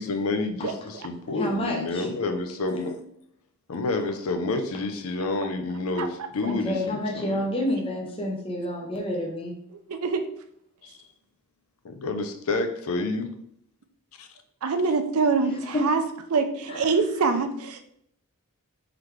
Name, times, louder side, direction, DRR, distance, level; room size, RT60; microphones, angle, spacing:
voice 1, 0.0-2.9 3.7-7.4 10.8-10.9 11.8-13.3 14.2-14.3, left 3 dB, 65° left, 7 dB, 0.5 m, -29 dB
voice 2, 0.6-1.1 5.4-5.5 6.0-6.5 7.6-7.7 9.9-10.2 14.6-16.0 16.3-17.8, right 4 dB, 70° right, 7 dB, 0.5 m, -25 dB
voice 3, 1.3-2.1 6.5-9.5 15.7-15.8 16.7-16.8, left 1 dB, 25° left, -1 dB, 0.7 m, -29 dB
3.8 x 3.3 x 3.1 m, 0.69 s
head